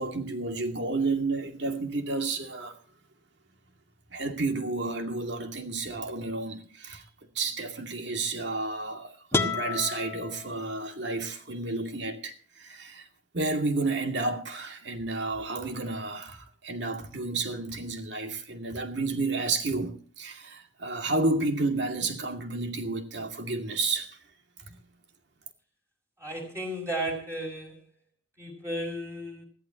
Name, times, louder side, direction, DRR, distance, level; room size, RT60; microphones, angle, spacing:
voice 1, 0.0-2.8 4.1-7.1 7.3-13.1 13.3-24.2 24.7-24.8, right 3 dB, 65° right, 2.4 m, -31 dB
sound 1, 9.3-11.2, left 3 dB, 15° left, 1.1 m, -31 dB
voice 2, 26.2-27.7 28.4-29.4, right 1 dB, 15° right, 5.1 m, -34 dB
20.5 x 15.0 x 2.9 m
head